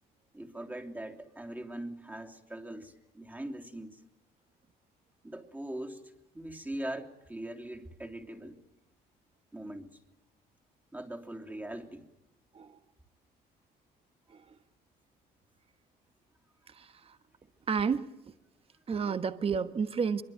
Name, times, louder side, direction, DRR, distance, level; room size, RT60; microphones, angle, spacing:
voice 1, 0.3-4.0 5.2-6.0 6.3-8.6 9.5-10.0 10.9-12.1, right 1 dB, 10° right, 2 dB, 3.2 m, -41 dB
voice 2, 17.7-18.1 18.9-20.2, right 6 dB, 35° right, 11 dB, 1.5 m, -30 dB
24.5 x 23.0 x 9.2 m, 0.97 s
cardioid pair, 110°, 17 cm